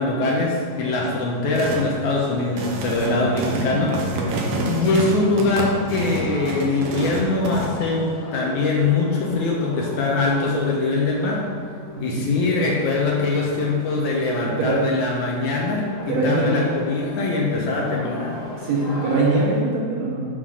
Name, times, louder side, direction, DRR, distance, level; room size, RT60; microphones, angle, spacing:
voice 1, 0.0-4.0 4.6-11.5 12.0-18.4, left 3 dB, 70° left, -1 dB, 2.0 m, -22 dB
sound 1, 0.6-19.6, left 1 dB, 50° left, 2.4 m, -39 dB
sound 2, 1.5-1.9 2.4-7.7, right 2 dB, 90° right, 2.7 m, -28 dB
voice 2, 3.1-3.6 4.1-4.4 12.0-12.4 14.6-14.8 16.1-16.6 18.6-20.3, right 3 dB, 65° right, -4 dB, 2.1 m, -23 dB
7.7 x 4.1 x 6.2 m, 2.1 s
omnidirectional pair, 3.9 m